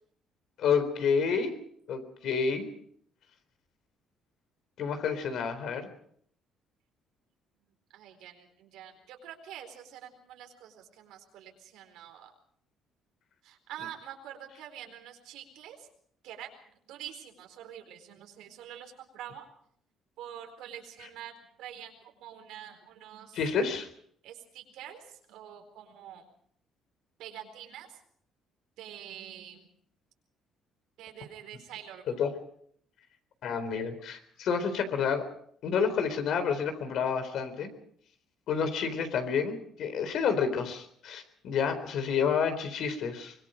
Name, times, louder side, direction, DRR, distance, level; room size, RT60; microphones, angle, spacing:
voice 1, 0.6-1.5 1.9-2.7 4.8-5.9 23.3-23.9 32.2-32.3 33.4-35.3 35.6-37.7 38.5-43.3, left 6 dB, 60° left, 9 dB, 3.9 m, -29 dB
voice 2, 7.9-12.3 13.4-15.9 16.2-16.5 16.9-19.5 20.2-21.3 21.6-23.4 24.2-26.2 27.2-28.0 28.8-29.7 31.0-32.1, right 10 dB, 85° right, 5 dB, 4.4 m, -46 dB
24.5 x 22.5 x 5.2 m, 0.63 s
cardioid pair, 150°, 0 cm